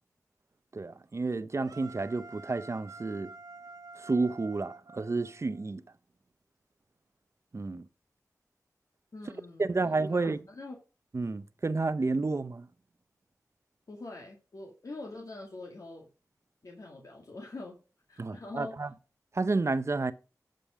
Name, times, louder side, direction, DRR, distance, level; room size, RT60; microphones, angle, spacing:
voice 1, 0.7-3.3 4.0-5.8 7.5-7.9 9.6-10.4 11.1-12.7 18.2-18.9 19.3-20.1, right 3 dB, 50° right, 0.7 m, -30 dB
sound 1, 1.6-5.7, right 3 dB, 85° right, 1.7 m, -49 dB
voice 2, 9.1-10.8 13.9-16.1 16.6-17.8 18.1-18.8, left 2 dB, 65° left, 2.2 m, -44 dB
11.5 x 5.3 x 5.0 m
wide cardioid pair, 65°, 6 cm